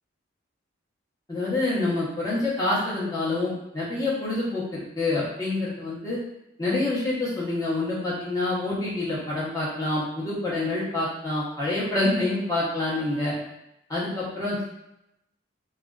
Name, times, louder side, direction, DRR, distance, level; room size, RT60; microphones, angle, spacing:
voice 1, 1.3-6.2 6.6-13.3 13.9-14.7, left 2 dB, 20° left, -7 dB, 0.7 m, -27 dB
2.4 x 2.2 x 2.3 m, 0.86 s
head